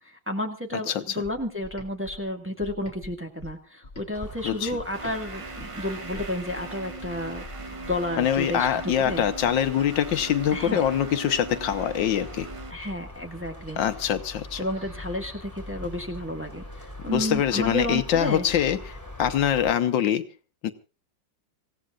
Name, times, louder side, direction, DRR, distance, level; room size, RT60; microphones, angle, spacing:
voice 1, 0.0-9.2 10.5-10.8 12.7-13.8 14.6-18.5, left 1 dB, 5° right, 2 dB, 1.6 m, -31 dB
sound 1, 1.2-5.2 5.6-9.6, left 2 dB, 25° left, 2.4 m, -46 dB
sound 2, 4.1-19.8, left 1 dB, 10° left, 3.5 m, -42 dB
voice 2, 4.4-4.8 8.2-12.5 13.8-14.6 17.1-20.3 20.6-20.7, left 9 dB, 85° left, 10 dB, 1.7 m, -24 dB
sound 3, 4.9-12.7, right 3 dB, 45° right, 0.4 m, -40 dB
26.0 x 16.5 x 2.5 m, 0.33 s
omnidirectional pair, 2.0 m